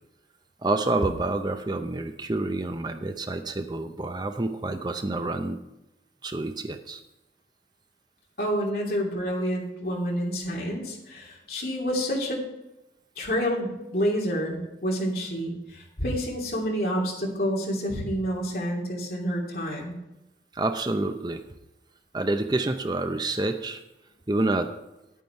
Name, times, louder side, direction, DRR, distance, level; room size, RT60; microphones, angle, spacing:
voice 1, 0.6-5.6 6.2-7.0 20.5-21.4 22.1-23.8 24.3-24.7, right 2 dB, 25° right, 7 dB, 0.6 m, -28 dB
voice 2, 8.4-12.4 13.2-20.0, equal, 55° left, -1 dB, 2.9 m, -28 dB
10.0 x 9.3 x 4.5 m, 0.96 s
head